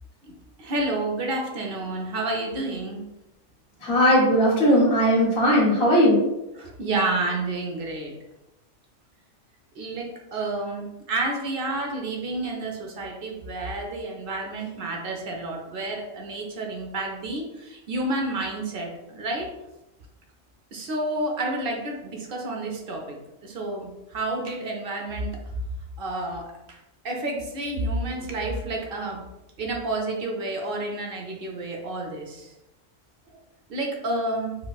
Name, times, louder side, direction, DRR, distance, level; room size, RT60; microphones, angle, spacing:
voice 1, 0.3-3.0 6.5-8.1 9.8-19.5 20.7-23.2 23.4-25.4 26.0-26.8 27.0-29.2 29.6-32.5 33.7-34.5, right 2 dB, 60° right, 1 dB, 0.7 m, -30 dB
voice 2, 3.8-6.2, equal, 60° left, -6 dB, 1.3 m, -18 dB
4.0 x 2.1 x 2.3 m, 0.95 s
omnidirectional pair, 1.2 m